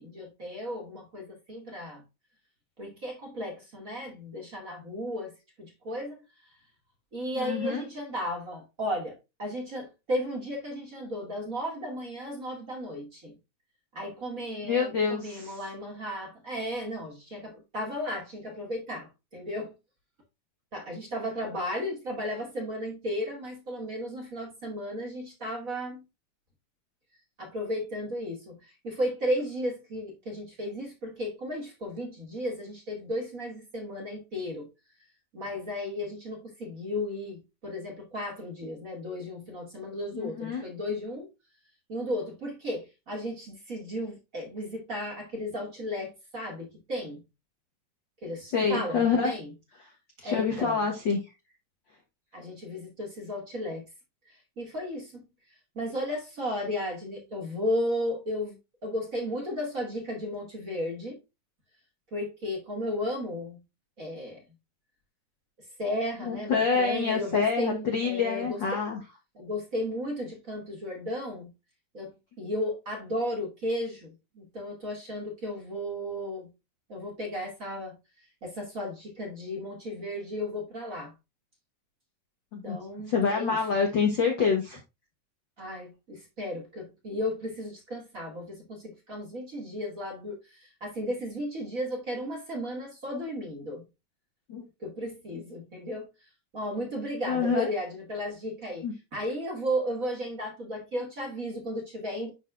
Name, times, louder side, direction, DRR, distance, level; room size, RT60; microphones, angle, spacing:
voice 1, 0.0-2.0 2.8-5.3 5.6-6.1 7.1-13.3 13.9-19.7 20.7-26.0 27.4-28.6 28.8-34.7 35.3-41.3 41.9-47.2 48.2-49.5 50.2-50.8 52.3-53.8 54.6-55.2 55.8-58.6 58.8-61.2 62.1-63.6 64.0-64.4 65.8-68.6 69.4-71.5 71.9-72.1 72.4-76.5 76.9-77.9 78.4-81.1 82.6-83.6 85.6-93.8 94.8-96.1 96.5-98.9 99.1-102.3, equal, 30° right, 2.2 m, -34 dB
voice 2, 7.3-7.8 14.6-15.6 40.1-40.6 48.4-49.3 49.8-49.9 50.2-51.3 66.2-69.0 82.5-82.8 83.1-84.8 94.5-94.6 97.3-97.7 98.8-98.9, left 5 dB, 55° left, 1.3 m, -27 dB
10.5 x 4.2 x 2.5 m
omnidirectional pair, 3.8 m